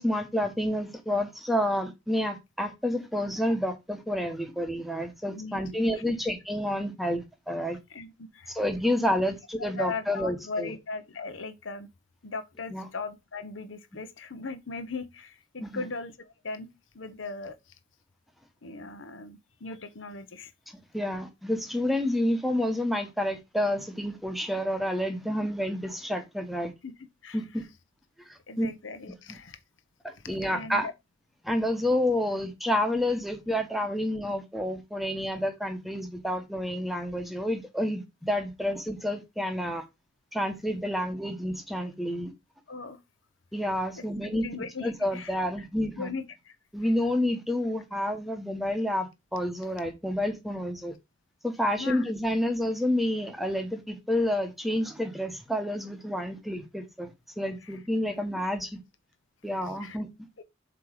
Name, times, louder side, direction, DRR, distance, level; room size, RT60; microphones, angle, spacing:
voice 1, 0.0-7.8 8.5-10.7 12.7-12.8 15.6-15.8 20.9-26.7 27.3-27.6 28.3-28.7 30.0-30.9 31.4-39.8 40.3-42.3 43.5-44.5 44.8-46.1 46.7-50.9 51.4-58.8 59.4-60.1, left 1 dB, ahead, 0.9 m, -29 dB
voice 2, 5.3-5.7 7.9-8.5 9.1-9.2 9.7-11.9 12.2-16.7 16.9-17.7 18.6-20.5 26.8-26.9 27.2-27.4 28.5-29.6 30.1-30.9 42.7-43.0 44.0-44.1 44.3-45.7 46.0-46.5 51.8-52.1 57.6-57.7 59.8-60.0 60.4-60.5, left 4 dB, 70° left, 0.9 m, -38 dB
7.6 x 2.9 x 4.9 m
head